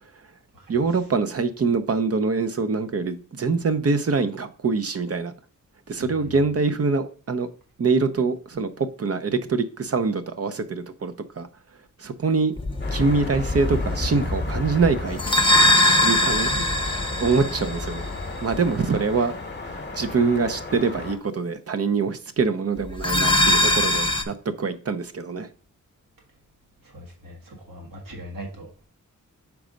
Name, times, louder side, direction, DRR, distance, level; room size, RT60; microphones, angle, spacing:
voice 1, 0.7-5.3 5.9-7.5 7.8-11.5 12.0-12.5 12.9-15.2 15.8-16.5 17.2-18.1 18.4-19.4 19.7-25.5, right 4 dB, 45° right, 0.7 m, -24 dB
voice 2, 6.0-6.4 16.3-16.7 26.8-28.8, right 1 dB, 80° right, 1.7 m, -39 dB
sound 1, 12.6-19.2 22.9-24.2, left 1 dB, 15° left, 0.7 m, -22 dB
sound 2, 12.8-21.2, left 3 dB, 30° left, 1.1 m, -36 dB
4.7 x 4.1 x 5.1 m
wide cardioid pair, 75°, 33 cm